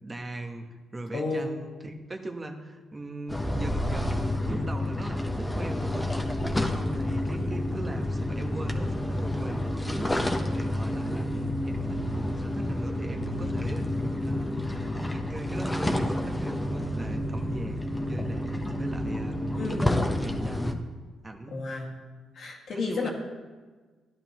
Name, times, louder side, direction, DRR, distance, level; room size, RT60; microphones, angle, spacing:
voice 1, 0.0-6.2 6.7-11.3 11.6-12.0 12.4-13.8 14.2-14.6 15.0-17.8 18.1-19.4 20.0-20.9 21.2-21.6 22.7-23.1, right 2 dB, 25° right, 4 dB, 1.1 m, -39 dB
voice 2, 1.1-1.5 19.5-19.9 21.5-21.9 22.3-23.1, left 3 dB, 65° left, -1 dB, 2.0 m, -31 dB
sound 1, 3.3-20.7, left 1 dB, 10° left, 1.0 m, -29 dB
13.5 x 10.0 x 3.0 m, 1.4 s
cardioid pair, 80°, 0 cm